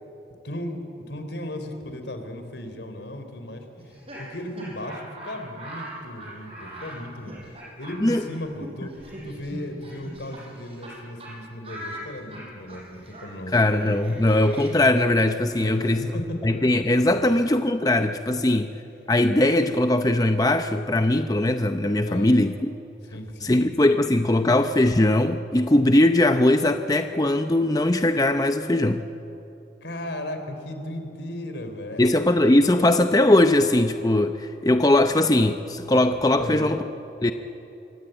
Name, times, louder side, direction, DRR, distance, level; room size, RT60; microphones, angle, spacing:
voice 1, 0.4-0.8 1.1-3.9 4.2-7.3 7.8-8.9 9.2-13.6 15.6-16.5 17.1-17.3 18.3-18.4 22.0-22.3 23.1-23.7 29.8-32.9 36.3-36.8, left 1 dB, 75° left, 7 dB, 3.6 m, -36 dB
Laughter, 3.8-10.9 11.2-11.3 11.6-17.4, right 1 dB, 30° right, 6.5 m, -42 dB
voice 2, 13.5-16.1 16.4-18.7 19.1-22.7 23.4-29.0 32.0-36.8 37.2-37.3, left 1 dB, 20° left, 8 dB, 0.6 m, -20 dB
25.5 x 24.5 x 9.0 m, 3.0 s
head